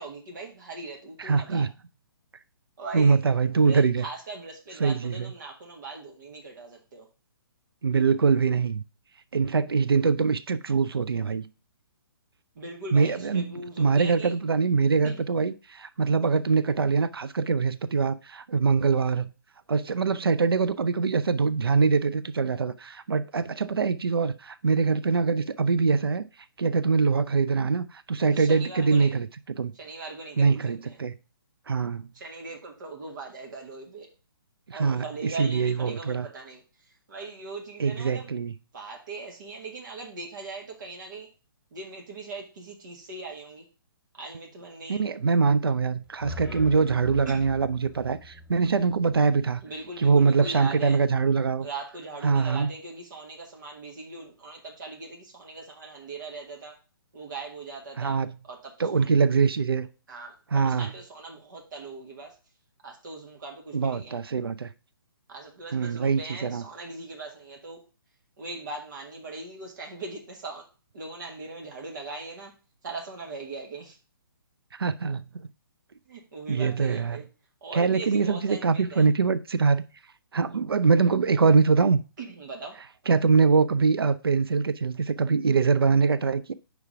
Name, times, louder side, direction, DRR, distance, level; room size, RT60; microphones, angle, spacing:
voice 1, 0.0-1.6 2.8-3.1 3.6-7.1 12.5-14.3 15.0-15.3 28.3-29.1 29.7-31.0 32.1-34.1 34.7-36.6 37.1-38.3 38.7-41.3 41.7-43.6 44.1-45.0 47.2-47.4 49.6-51.0 51.6-56.8 57.1-59.1 60.1-62.3 62.8-64.1 65.3-67.8 68.4-70.6 70.9-72.5 72.8-74.0 76.1-77.2 77.6-79.0 82.2-82.8, right 3 dB, 55° right, 1.8 m, -40 dB
voice 2, 1.2-1.7 2.9-4.0 4.8-5.3 7.8-8.8 9.3-11.5 12.9-19.3 19.7-26.2 26.6-29.7 30.4-31.1 31.7-32.1 34.7-36.3 37.8-38.5 44.9-49.6 50.0-51.7 52.2-52.7 58.0-58.3 58.8-59.9 60.5-60.9 63.7-64.7 65.7-66.6 74.7-75.5 76.5-77.2 77.7-79.8 80.3-82.0 83.1-86.5, right 5 dB, 85° right, 0.5 m, -23 dB
sound 1, 46.0-50.1, left 1 dB, ahead, 1.1 m, -43 dB
5.1 x 4.7 x 5.6 m
figure-of-eight pair, 140°, 12 cm